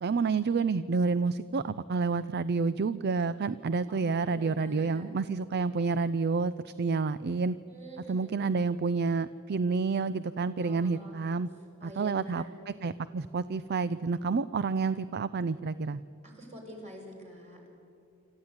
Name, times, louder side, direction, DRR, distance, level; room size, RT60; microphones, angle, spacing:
voice 1, 0.0-7.6 8.1-11.5 11.8-16.0, right 4 dB, 55° right, 16 dB, 0.5 m, -29 dB
voice 2, 3.9-5.1 7.7-8.4 10.6-11.1 11.8-12.5 16.2-17.6, right 1 dB, 35° right, 0 dB, 5.6 m, -47 dB
26.5 x 14.0 x 9.6 m, 2.7 s
head